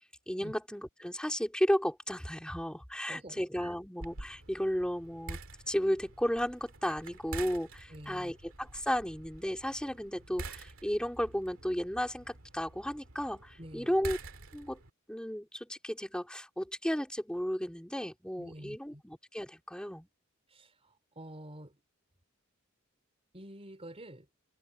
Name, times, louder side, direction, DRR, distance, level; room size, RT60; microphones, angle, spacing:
voice 1, 0.3-5.4 5.7-14.2 14.5-14.8 15.1-20.1, equal, 5° left, 3.4 m, -34 dB
voice 2, 3.0-3.7 7.9-8.3 13.6-13.9 18.4-19.0 20.5-21.8 23.3-24.3, right 1 dB, 30° right, 3.6 m, -48 dB
sound 1, 4.0-14.9, right 3 dB, 65° right, 2.6 m, -47 dB
head